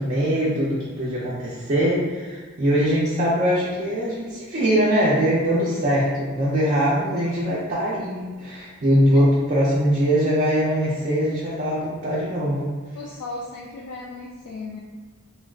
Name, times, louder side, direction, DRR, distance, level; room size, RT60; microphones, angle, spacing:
voice 1, 0.0-12.7, equal, 35° right, -7 dB, 0.5 m, -22 dB
voice 2, 12.9-14.8, left 3 dB, 85° left, -2 dB, 0.3 m, -36 dB
3.5 x 2.2 x 2.3 m, 1.5 s
head